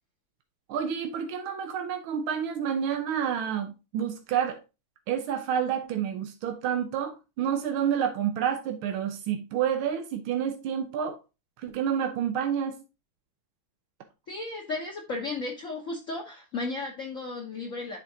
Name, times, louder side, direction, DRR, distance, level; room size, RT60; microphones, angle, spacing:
voice 1, 0.7-4.6 5.1-11.2 11.6-12.8, right 8 dB, 90° right, 1.7 m, -29 dB
voice 2, 14.3-18.0, left 3 dB, 50° left, 1.0 m, -34 dB
10.5 x 3.7 x 2.7 m
omnidirectional pair, 2.2 m